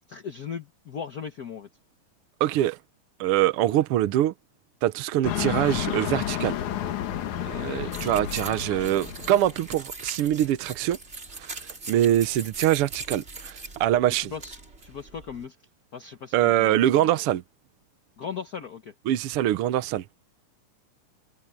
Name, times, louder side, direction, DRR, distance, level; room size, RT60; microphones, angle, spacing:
voice 1, 0.1-1.7 7.6-7.8 14.2-14.6 14.8-15.5 15.9-17.2 18.2-18.9, left 7 dB, 65° left, 0.9 m, -38 dB
voice 2, 2.4-2.8 3.2-4.3 4.8-6.6 7.4-11.0 11.3-14.3 16.3-17.4 19.1-20.1, right 12 dB, 70° right, 1.4 m, -24 dB
sound 1, 5.2-9.8, left 11 dB, 80° left, 2.8 m, -31 dB
sound 2, 7.9-15.5, right 3 dB, 25° right, 2.5 m, -41 dB
omnidirectional pair, 3.4 m